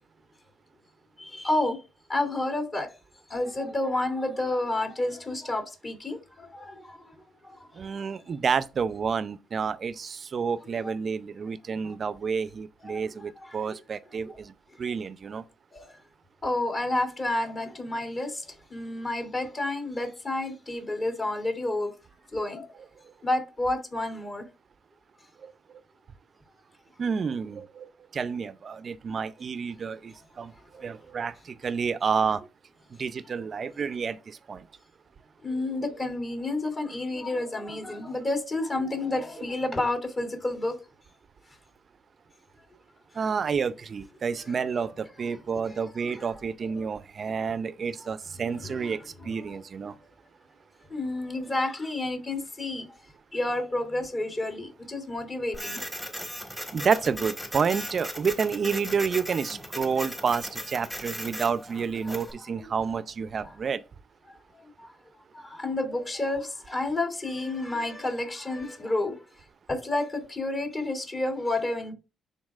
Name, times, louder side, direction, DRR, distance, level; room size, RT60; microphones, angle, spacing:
voice 1, 1.2-1.8 2.1-2.9 3.3-7.1 7.4-7.7 8.0-8.1 10.8-10.9 12.8-13.1 13.4-13.5 14.2-14.4 15.7-15.9 16.4-21.9 22.3-22.7 23.2-24.5 35.4-40.8 44.4-44.5 45.7-45.8 46.0-46.3 46.6-46.8 48.4-49.0 49.4-49.6 50.9-52.9 53.3-55.8 62.0-62.2 62.6-62.7 63.4-63.5 64.3-64.9 65.3-69.2 69.7-71.9, left 2 dB, 35° left, 2.8 m, -30 dB
voice 2, 7.8-14.5 14.8-15.4 25.4-25.5 27.0-32.5 33.0-34.7 43.1-49.9 56.7-63.8, right 6 dB, 45° right, 0.5 m, -29 dB
Printer, 55.5-62.3, equal, 5° left, 1.5 m, -37 dB
12.0 x 4.1 x 2.4 m
cardioid pair, 90°, 0 cm